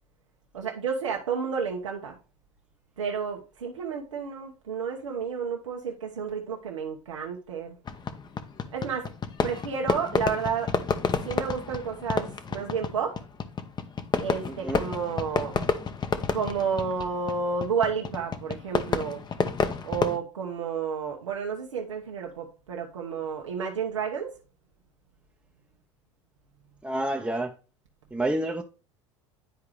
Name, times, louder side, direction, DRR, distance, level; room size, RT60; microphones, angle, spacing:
voice 1, 0.5-2.2 3.0-7.8 8.7-9.1 9.4-10.7 11.2-13.2 14.2-15.6 16.3-19.2 19.8-24.3, right 6 dB, 85° right, 1.0 m, -31 dB
Fireworks, 7.9-20.2, left 5 dB, 30° left, 0.9 m, -30 dB
voice 2, 14.5-14.8 26.8-27.5 28.1-28.6, right 1 dB, 5° right, 0.8 m, -29 dB
10.5 x 4.7 x 3.1 m
hypercardioid pair, 75°, 15 cm